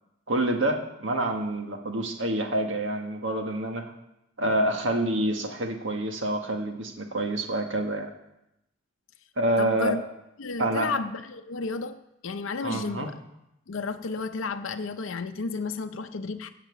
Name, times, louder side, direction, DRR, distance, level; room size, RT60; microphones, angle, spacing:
voice 1, 0.3-3.9 4.4-8.1 9.4-10.0 10.6-10.9 12.6-13.1, right 1 dB, 70° right, 4 dB, 1.7 m, -27 dB
voice 2, 9.6-10.0 10.4-13.2 13.7-16.5, left 4 dB, 80° left, 6 dB, 0.6 m, -32 dB
16.0 x 5.9 x 8.4 m, 0.87 s
head